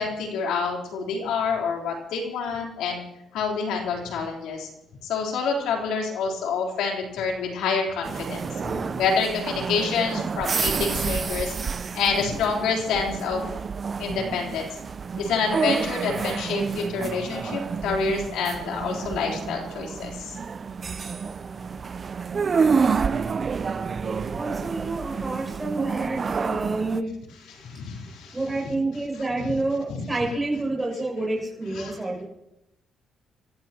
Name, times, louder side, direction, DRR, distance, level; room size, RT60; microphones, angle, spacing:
voice 1, 0.0-3.0 3.3-4.7 5.0-11.5 11.9-13.4 14.0-14.7 15.2-20.4 27.5-28.4 28.6-28.7 29.1-29.5 29.9-30.0 31.7-31.9, left 5 dB, 90° left, 0 dB, 3.8 m, -27 dB
sound 1, 8.0-27.0, right 5 dB, 40° right, 0.6 m, -29 dB
voice 2, 24.3-27.1 28.3-32.2, right 2 dB, 15° right, -2 dB, 7.1 m, -28 dB
30.0 x 15.5 x 3.0 m, 0.87 s
cardioid pair, 90°, 0 cm